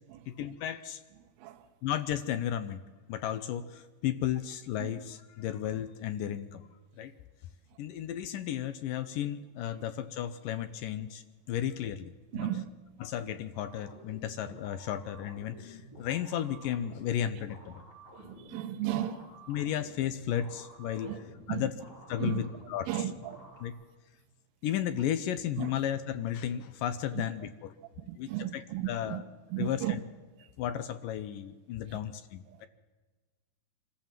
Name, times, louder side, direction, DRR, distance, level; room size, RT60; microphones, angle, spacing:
voice 1, 0.3-1.0 1.8-2.8 3.1-6.7 7.0-7.1 7.8-12.5 13.0-17.8 19.5-21.2 21.5-21.7 22.1-22.9 23.6-23.7 24.6-27.7 28.2-29.2 29.6-30.0 30.6-32.7, left 10 dB, 80° left, 2.0 m, -34 dB
voice 2, 12.3-12.7 18.2-19.3 21.0-21.2 21.5-21.7 22.2-22.4 22.9-23.5 25.6-25.7 27.1-27.2 28.1-29.2 29.5-29.9 31.9-32.0, right 13 dB, 80° right, 3.0 m, -34 dB
sound 1, 13.7-23.7, right 1 dB, 15° left, 2.9 m, -52 dB
25.0 x 14.5 x 7.4 m
omnidirectional pair, 4.7 m